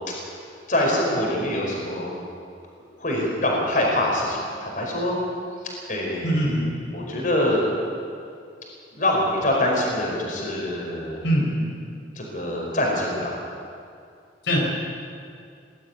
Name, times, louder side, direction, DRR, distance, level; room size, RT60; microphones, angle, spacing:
voice 1, 0.7-2.1 3.0-5.2 5.9-6.3 6.9-7.6 8.9-11.2 12.2-13.4, left 1 dB, 45° left, -2 dB, 4.9 m, -24 dB
voice 2, 6.2-6.7 11.2-11.7 14.4-14.6, equal, 75° left, -2 dB, 4.7 m, -22 dB
20.5 x 13.0 x 9.6 m, 2.4 s
head